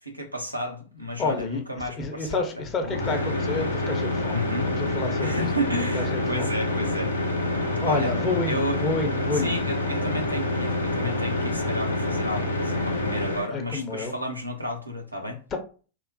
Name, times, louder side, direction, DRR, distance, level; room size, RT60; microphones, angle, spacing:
voice 1, 0.0-2.7 4.3-4.7 5.2-7.1 7.8-8.1 8.5-8.8 9.3-15.4, equal, 90° right, 0.7 m, -32 dB
voice 2, 1.2-1.6 2.0-5.5 5.9-6.5 7.8-9.5 13.5-14.1 15.5-15.6, left 3 dB, 30° left, 0.7 m, -29 dB
sound 1, 2.8-13.5, left 2 dB, 80° left, 0.6 m, -27 dB
2.9 x 2.0 x 2.7 m
figure-of-eight pair, 90°, 0 cm